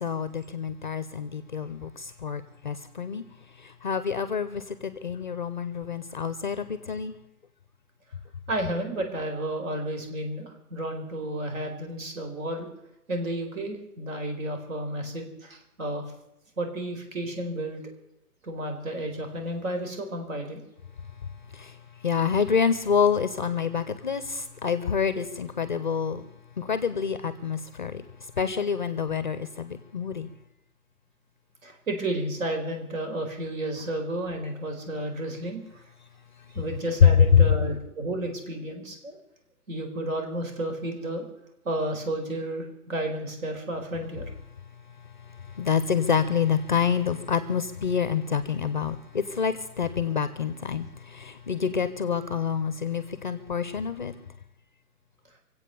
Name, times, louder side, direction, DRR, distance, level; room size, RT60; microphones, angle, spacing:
voice 1, 0.0-3.2 3.6-7.2 21.5-21.7 22.0-26.3 26.6-28.0 28.4-30.3 37.0-37.4 45.6-54.1, left 7 dB, 30° left, 0.6 m, -26 dB
voice 2, 8.5-12.7 13.1-16.0 16.6-17.8 18.4-20.6 31.6-35.6 36.5-39.2 39.7-41.3 41.6-44.2, right 1 dB, 55° right, 4.5 m, -32 dB
24.5 x 8.4 x 6.9 m
hypercardioid pair, 165°, 47 cm